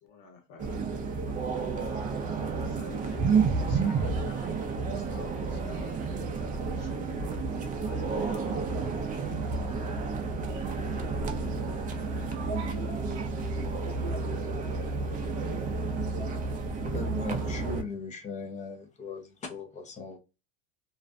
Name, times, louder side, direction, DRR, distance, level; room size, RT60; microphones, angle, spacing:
voice 1, 0.0-0.8 1.2-1.3 2.6-6.9 7.3-8.8, left 4 dB, 70° left, 1.0 m, -49 dB
sound 1, 0.6-17.8, right 4 dB, 25° right, 0.4 m, -31 dB
voice 2, 11.9-14.2 16.2-16.3, right 3 dB, 45° right, 1.0 m, -42 dB
voice 3, 16.8-20.2, left 4 dB, 25° left, 0.6 m, -39 dB
2.5 x 2.2 x 2.3 m
supercardioid pair, 120°, 31 cm